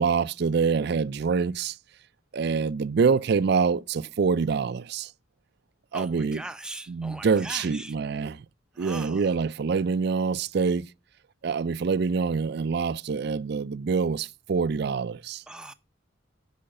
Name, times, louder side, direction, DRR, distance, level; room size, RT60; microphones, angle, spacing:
voice 1, 0.0-1.8 2.3-5.1 5.9-6.4 6.9-8.5 8.8-10.9 11.4-15.4, right 5 dB, 55° right, 0.4 m, -25 dB
voice 2, 5.9-7.9 8.7-9.3 15.5-15.7, right 1 dB, 5° right, 0.6 m, -40 dB
8.6 x 5.7 x 6.4 m
head